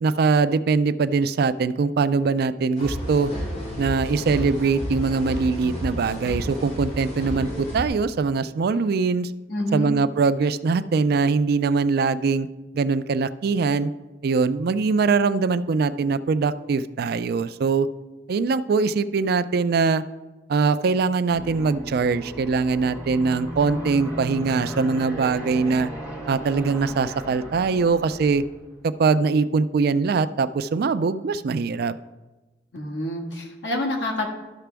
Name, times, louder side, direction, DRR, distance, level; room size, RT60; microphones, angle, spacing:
voice 1, 0.0-3.3 3.8-9.3 9.7-12.5 12.7-13.9 14.2-17.9 18.3-20.0 20.5-25.9 26.3-28.4 28.8-32.0, right 4 dB, 60° right, 14 dB, 0.4 m, -22 dB
sound 1, 2.8-7.9, equal, 40° left, 2.2 m, -32 dB
voice 2, 9.5-9.9 32.7-34.3, left 1 dB, 75° left, 1 dB, 1.6 m, -27 dB
Aircraft, 21.3-28.6, right 1 dB, 20° left, 1.6 m, -36 dB
12.5 x 5.9 x 3.4 m, 1.2 s
head